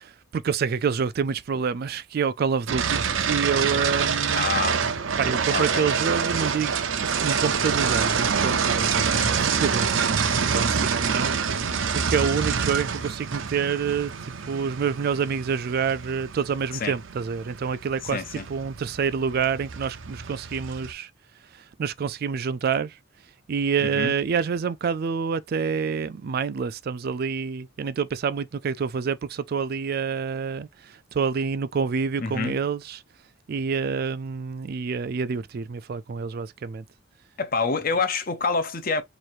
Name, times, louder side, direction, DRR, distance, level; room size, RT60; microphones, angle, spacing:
voice 1, 0.0-4.5 5.2-8.9 9.4-21.1 21.5-23.0 23.5-33.0 33.5-36.8, right 6 dB, 50° right, 0.3 m, -27 dB
sound 1, 2.7-20.9, right 6 dB, 85° right, 0.7 m, -26 dB
voice 2, 4.4-4.8 5.5-5.9 9.0-9.3 16.8-17.0 18.0-18.5 23.8-24.1 32.2-32.6 37.4-39.0, left 4 dB, 45° left, 0.8 m, -27 dB
3.1 x 2.6 x 4.5 m
head